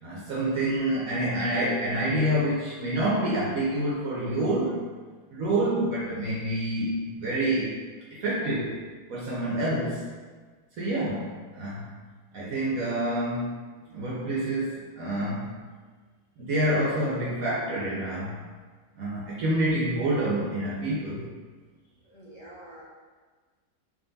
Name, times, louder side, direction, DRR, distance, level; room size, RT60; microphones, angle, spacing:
voice 1, 0.0-4.8 5.3-7.7 8.1-8.8 9.1-10.1 10.7-11.9 12.3-13.5 13.9-15.5 16.4-18.3 19.0-21.3, right 1 dB, 65° right, -7 dB, 1.2 m, -27 dB
voice 2, 16.4-16.8 22.1-22.8, right 1 dB, 25° left, -7 dB, 0.8 m, -48 dB
3.8 x 3.0 x 3.9 m, 1.4 s
omnidirectional pair, 1.7 m